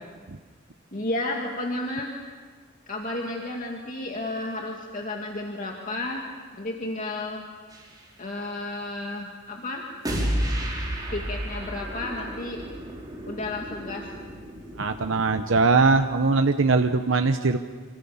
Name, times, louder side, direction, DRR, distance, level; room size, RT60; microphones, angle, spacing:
voice 1, 0.9-2.1 2.9-6.2 6.6-7.4 8.2-9.8 11.1-12.6 13.3-14.1, left 2 dB, 40° left, 0 dB, 2.2 m, -32 dB
sound 1, 7.7-8.0 10.0-16.0, equal, 20° right, 5.1 m, -32 dB
voice 2, 14.8-17.6, right 3 dB, 70° right, 7 dB, 0.9 m, -21 dB
27.0 x 26.0 x 7.1 m, 1.5 s
head